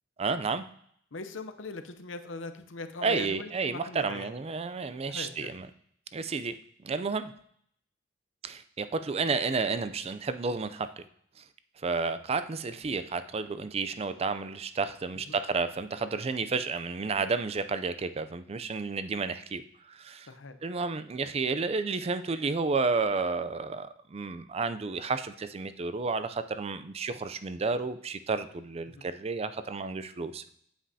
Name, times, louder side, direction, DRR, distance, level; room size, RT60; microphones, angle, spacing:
voice 1, 0.2-0.7 3.0-5.7 6.1-6.6 6.8-7.3 8.4-10.9 11.8-19.6 19.9-20.3 20.6-30.4, right 4 dB, 30° right, 11 dB, 0.4 m, -31 dB
voice 2, 1.1-4.3 5.0-5.5 15.3-15.4 20.3-20.6 28.9-29.0, left 3 dB, 85° left, 9 dB, 0.7 m, -40 dB
8.7 x 7.5 x 2.8 m, 0.66 s
head